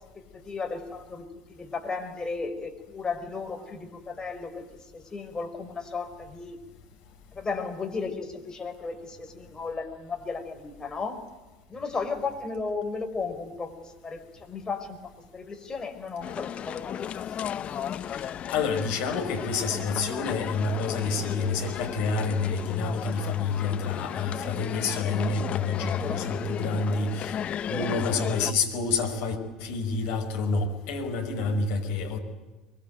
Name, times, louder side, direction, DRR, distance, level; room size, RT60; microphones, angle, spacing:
voice 1, 0.1-4.6 4.9-6.6 7.3-11.2 11.7-15.0 15.3-17.2 17.7-17.8 25.9-26.8 27.6-27.9, left 4 dB, 25° left, 5 dB, 5.2 m, -35 dB
sound 1, 16.2-28.5, left 9 dB, 40° left, 0.9 m, -35 dB
voice 2, 18.1-27.4 27.7-32.2, left 4 dB, 60° left, 5 dB, 5.2 m, -28 dB
23.5 x 23.5 x 9.3 m, 1.2 s
hypercardioid pair, 70°, 3 cm